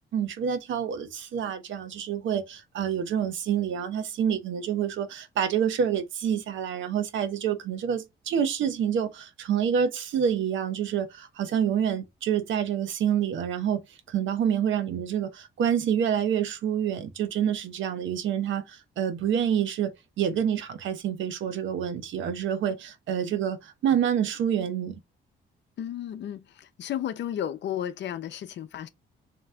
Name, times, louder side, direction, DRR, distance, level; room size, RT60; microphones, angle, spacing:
voice 1, 0.1-13.8 14.1-19.9 20.2-25.0, right 8 dB, 75° right, 0.9 m, -27 dB
voice 2, 25.8-28.9, left 10 dB, 65° left, 0.6 m, -33 dB
3.2 x 3.0 x 3.6 m
cardioid pair, 90°, 20 cm